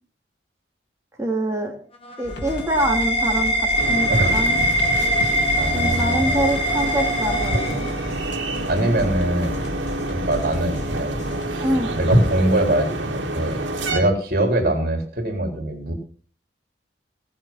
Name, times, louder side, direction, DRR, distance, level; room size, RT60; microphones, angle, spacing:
voice 1, 1.2-1.8 2.2-4.6 5.7-7.9 11.6-11.9, right 1 dB, 15° right, 0 dB, 3.2 m, -25 dB
sound 1, 1.9-8.4, equal, 30° left, 2.3 m, -23 dB
sound 2, 2.2-11.5, left 1 dB, 60° left, 3.6 m, -35 dB
sound 3, 3.8-14.0, right 1 dB, 80° right, 2.5 m, -26 dB
voice 2, 4.1-4.6 5.0-6.5 8.7-9.7 10.1-11.2 11.5-11.7 11.9-13.6 13.9-15.9, right 1 dB, 50° right, 3 dB, 4.1 m, -23 dB
19.5 x 7.2 x 5.9 m, 0.43 s
head